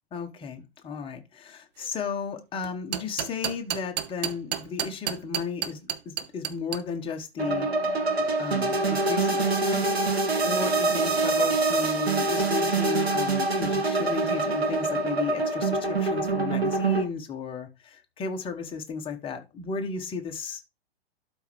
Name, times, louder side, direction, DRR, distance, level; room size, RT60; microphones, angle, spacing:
voice 1, 0.1-5.8 6.0-7.7 8.4-20.6, left 5 dB, 15° left, 1.2 m, -34 dB
sound 1, 2.6-6.8, right 10 dB, 45° right, 0.8 m, -30 dB
sound 2, 7.4-17.0, right 3 dB, 80° right, 2.4 m, -25 dB
12.0 x 4.4 x 3.4 m
figure-of-eight pair, 110°, 31 cm